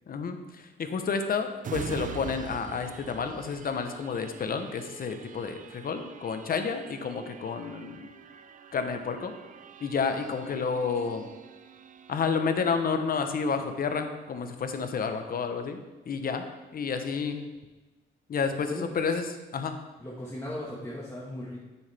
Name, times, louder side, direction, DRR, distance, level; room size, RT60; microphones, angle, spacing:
voice 1, 0.1-8.1 8.7-9.3 9.8-11.3 12.1-15.8 16.1-16.4 16.7-17.4 18.3-19.3 19.5-19.7, left 5 dB, 45° left, 7 dB, 1.0 m, -30 dB
sound 1, 1.6-14.9 15.4-15.5, right 7 dB, 40° right, 0.6 m, -45 dB
voice 2, 20.0-21.6, left 1 dB, 15° left, -6 dB, 1.6 m, -37 dB
9.8 x 7.1 x 3.5 m, 1.2 s
cardioid pair, 90°, 20 cm